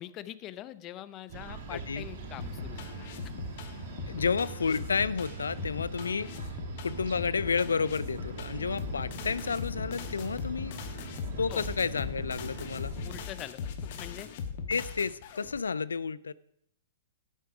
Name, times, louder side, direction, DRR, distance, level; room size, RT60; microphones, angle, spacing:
voice 1, 0.0-2.9 3.2-3.3 4.2-4.3 11.5-11.6 13.0-14.3, left 13 dB, 30° left, 17 dB, 0.6 m, -43 dB
sound 1, 1.3-13.2, right 3 dB, 55° right, 3.0 m, -42 dB
voice 2, 1.7-2.0 4.1-6.5 6.8-10.8 11.4-12.9 14.7-16.3, left 5 dB, 80° left, 20 dB, 0.4 m, -31 dB
sound 2, 2.4-15.6, left 6 dB, 55° left, 1.4 m, -40 dB
12.0 x 8.2 x 4.9 m, 0.72 s
hypercardioid pair, 115°, 0 cm